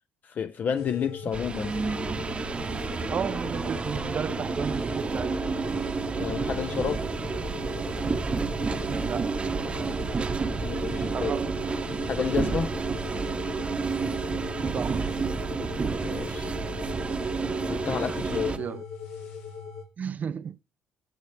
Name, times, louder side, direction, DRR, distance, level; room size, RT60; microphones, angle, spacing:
voice 1, 0.2-1.7 6.2-7.1 10.6-11.3 12.0-12.7 16.0-16.5 17.7-18.6, left 7 dB, 50° left, 0.7 m, -30 dB
sound 1, 0.7-19.8, left 6 dB, 80° left, 3.5 m, -40 dB
sound 2, 1.3-18.6, right 4 dB, 30° right, 0.8 m, -30 dB
voice 2, 3.1-5.4 9.0-9.6 11.1-11.6 14.7-15.1 18.2-18.8 20.0-20.6, right 7 dB, 45° right, 0.5 m, -33 dB
15.0 x 7.2 x 3.3 m
cardioid pair, 85°, 4 cm